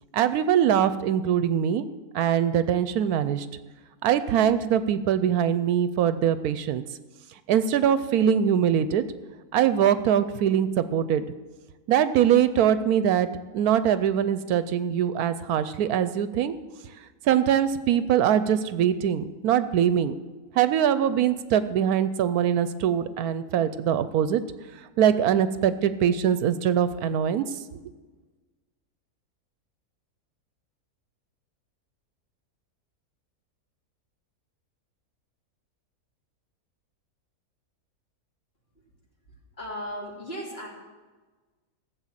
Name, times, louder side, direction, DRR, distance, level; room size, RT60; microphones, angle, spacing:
voice 1, 0.1-1.8 2.1-3.5 4.0-6.8 7.5-9.0 9.5-11.2 11.9-13.3 13.5-16.5 17.2-20.1 20.5-24.4 25.0-27.5, right 9 dB, 75° right, 13 dB, 1.1 m, -22 dB
voice 2, 39.5-40.7, equal, 40° left, -2 dB, 3.0 m, -35 dB
14.5 x 7.5 x 7.4 m, 1.3 s
omnidirectional pair, 1.6 m